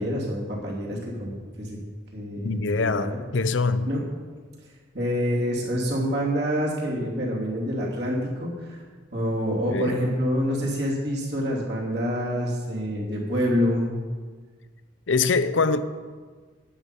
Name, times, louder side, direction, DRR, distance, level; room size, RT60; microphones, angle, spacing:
voice 1, 0.0-1.3 1.6-1.8 2.1-3.2 3.9-4.0 4.9-8.8 9.1-14.0, equal, 60° right, 3.0 m, -27 dB
voice 2, 2.4-3.9 9.7-10.0 15.1-15.8, left 4 dB, 90° left, 0.7 m, -24 dB
12.0 x 9.9 x 5.3 m
head